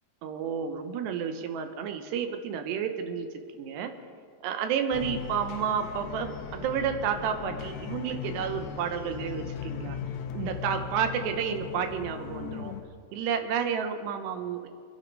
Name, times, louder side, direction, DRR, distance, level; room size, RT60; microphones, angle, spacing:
voice 1, 0.2-3.3 3.5-3.9 4.4-10.0 10.3-12.7 13.1-14.7, right 7 dB, 75° right, 7 dB, 2.8 m, -31 dB
sound 1, 4.9-12.8, left 7 dB, 75° left, 3.0 m, -38 dB
24.5 x 10.0 x 5.3 m, 2.2 s
omnidirectional pair, 5.2 m